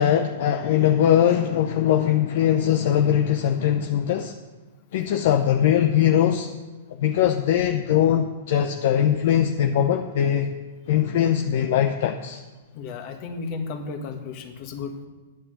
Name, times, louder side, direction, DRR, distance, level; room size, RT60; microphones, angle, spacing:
voice 1, 0.0-4.4 4.9-6.5 6.9-10.5 10.9-12.4, left 10 dB, 60° left, 5 dB, 0.7 m, -21 dB
voice 2, 12.7-15.1, left 4 dB, 45° left, 6 dB, 1.6 m, -33 dB
9.6 x 9.2 x 6.7 m, 1.2 s
hypercardioid pair, 130°, 0 cm